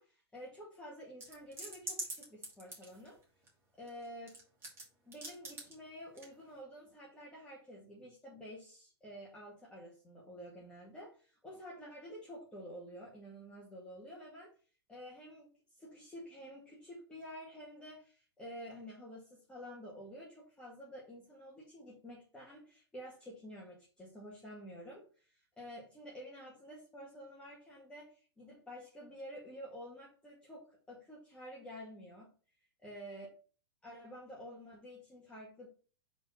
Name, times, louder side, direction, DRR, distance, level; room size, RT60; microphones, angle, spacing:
voice 1, 0.0-3.2 3.8-4.4 5.1-14.5 14.9-15.5 15.7-32.3 32.8-33.3 33.8-35.7, equal, 10° left, -6 dB, 1.9 m, -50 dB
sound 1, 1.2-3.5 3.9-4.8 5.1-5.7 6.2-6.3, right 2 dB, 20° right, 2.5 m, -43 dB
4.9 x 4.1 x 5.7 m, 0.39 s
hypercardioid pair, 125°, 13 cm